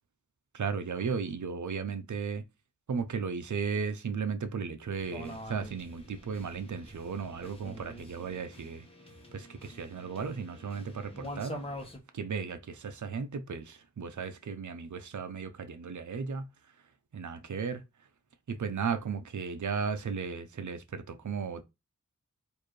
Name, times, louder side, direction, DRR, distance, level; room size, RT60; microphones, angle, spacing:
voice 1, 0.5-2.4 2.9-8.9 9.3-11.6 12.1-16.5 17.1-17.8 18.5-21.6, right 5 dB, 65° right, 0.6 m, -35 dB
sound 1, 5.0-12.0, equal, 15° left, 1.1 m, -45 dB
4.4 x 2.6 x 3.1 m
wide cardioid pair, 60°, 32 cm